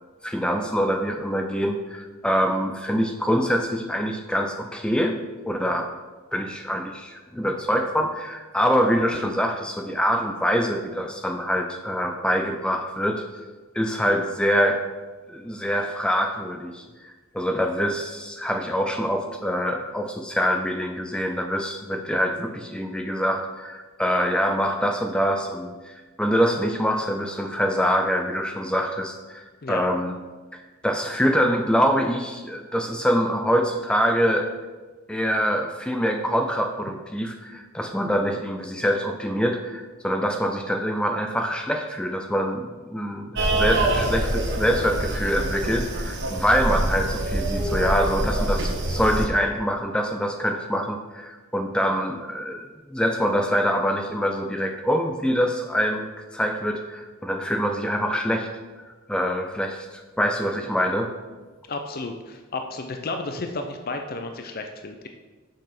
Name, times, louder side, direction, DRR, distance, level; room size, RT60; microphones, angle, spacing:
voice 1, 0.2-5.2 5.4-5.9 6.3-13.4 13.7-14.8 15.3-30.2 30.5-34.5 35.1-58.5 58.9-61.1, equal, 5° left, 4 dB, 0.5 m, -25 dB
sound 1, 43.4-49.3, right 1 dB, 55° right, 1.2 m, -25 dB
voice 2, 61.7-65.1, left 3 dB, 45° left, 5 dB, 0.6 m, -32 dB
6.7 x 6.3 x 5.8 m, 1.3 s
head